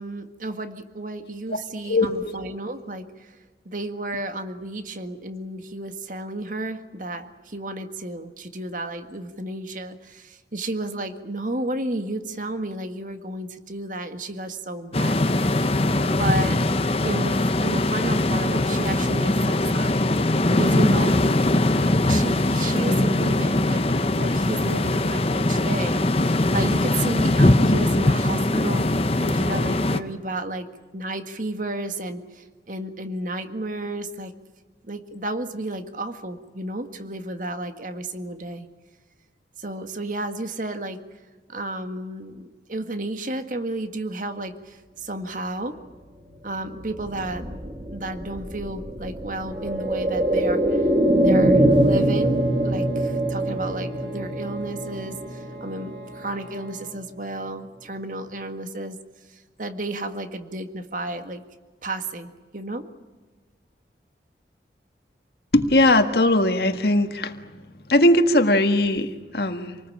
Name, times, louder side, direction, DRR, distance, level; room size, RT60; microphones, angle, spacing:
voice 1, 0.0-3.3 3.7-16.6 17.0-20.0 20.5-21.2 22.1-23.8 24.1-30.7 30.9-34.3 34.8-38.7 39.6-41.0 41.5-45.8 46.4-50.8 51.2-59.0 59.3-61.4 61.8-62.9, right 2 dB, 45° right, 8 dB, 1.8 m, -32 dB
voice 2, 1.8-2.3 65.5-67.3 67.9-69.8, left 1 dB, 65° left, 7 dB, 1.8 m, -19 dB
sound 1, 14.9-30.0, left 1 dB, 35° left, 0.9 m, -21 dB
sound 2, 46.7-56.5 56.8-56.9, right 1 dB, 30° right, 2.0 m, -23 dB
sound 3, 49.4-57.1, right 2 dB, 85° right, 4.0 m, -44 dB
27.5 x 20.0 x 8.7 m, 1.3 s
head